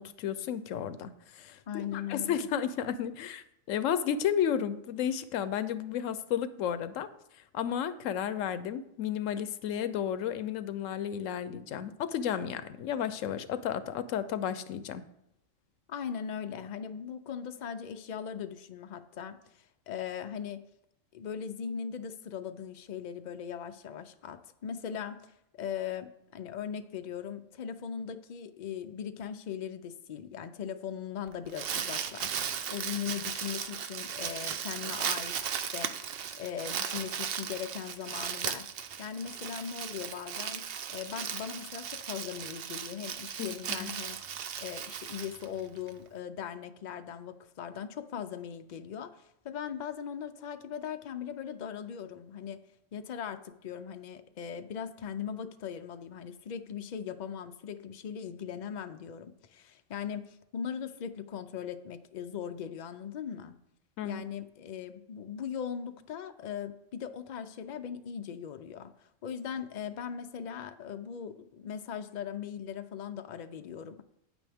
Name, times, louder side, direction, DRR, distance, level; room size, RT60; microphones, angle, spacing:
voice 1, 0.0-1.6 1.9-7.1 7.5-15.0 43.4-43.5 43.8-43.9 64.0-64.2, left 9 dB, 85° left, 13 dB, 1.0 m, -32 dB
voice 2, 1.7-2.4 15.9-20.6 21.1-25.2 25.5-36.1 36.3-38.7 39.0-40.6 40.9-44.2 44.6-52.6 52.9-63.6 64.0-74.0, left 8 dB, 55° left, 9 dB, 0.5 m, -39 dB
Crumpling crinkling, 31.3-45.9, right 8 dB, 60° right, 0.7 m, -37 dB
9.0 x 8.6 x 3.5 m, 0.80 s
omnidirectional pair, 1.3 m